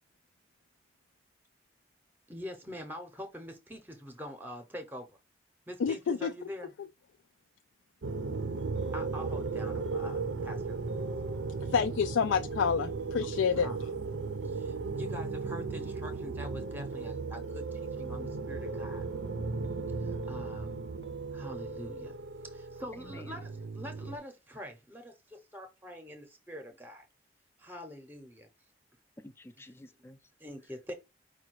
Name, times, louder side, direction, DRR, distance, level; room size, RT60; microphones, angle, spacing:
voice 1, 2.3-5.2 5.7-6.7 8.9-11.0 11.6-11.7 13.2-13.3 13.6-13.8 14.0-14.2 14.4-19.1 20.0-20.8 21.3-22.2 22.4-27.1 27.6-28.5 30.4-30.9, equal, 10° right, 0.7 m, -44 dB
voice 2, 5.8-6.3 11.7-13.7, left 6 dB, 90° left, 0.3 m, -28 dB
sound 1, 8.0-24.2, right 4 dB, 75° right, 0.5 m, -36 dB
voice 3, 22.9-23.4 29.2-30.3, left 1 dB, 15° left, 0.3 m, -51 dB
5.0 x 2.2 x 4.5 m
head